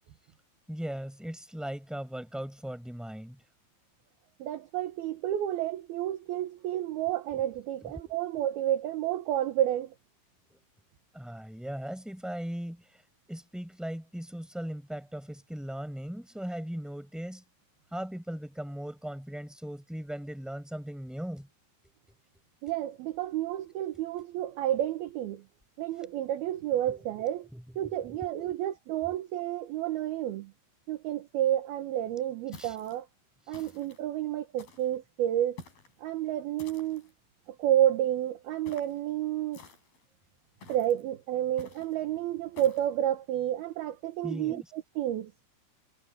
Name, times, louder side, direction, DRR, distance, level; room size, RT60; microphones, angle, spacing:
voice 1, 0.7-3.4 7.3-7.5 7.8-8.4 10.5-10.6 11.1-12.8 13.3-17.4 17.9-21.5 26.9-27.0 27.5-28.6 32.6-32.7 33.5-33.6 44.2-44.7, equal, ahead, 6.0 m, -39 dB
voice 2, 4.4-9.9 22.6-25.4 25.8-27.5 27.8-30.5 30.9-33.1 33.5-35.6 36.0-37.0 37.6-39.6 40.7-45.3, right 12 dB, 70° right, 2.5 m, -30 dB
sound 1, 32.5-33.0 33.5-34.0 34.6-35.0 35.6-36.0 36.6-37.1 38.7-39.0 39.5-40.0 40.6-41.0 41.6-41.9 42.6-42.9, left 4 dB, 50° left, 6.8 m, -50 dB
omnidirectional pair, 5.7 m